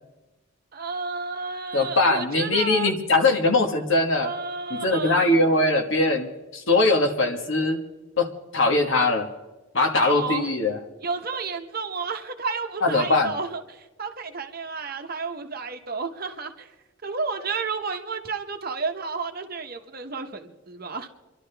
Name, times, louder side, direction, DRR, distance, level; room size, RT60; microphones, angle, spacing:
voice 1, 0.7-2.9 4.2-5.4 9.9-10.5 11.0-16.7 17.0-21.1, right 4 dB, 45° right, 6 dB, 0.9 m, -31 dB
voice 2, 1.7-4.3 4.7-7.8 8.2-8.3 8.5-9.3 9.7-10.8 12.8-13.3, left 2 dB, 65° left, 5 dB, 1.4 m, -21 dB
27.5 x 11.5 x 3.4 m, 1.1 s
head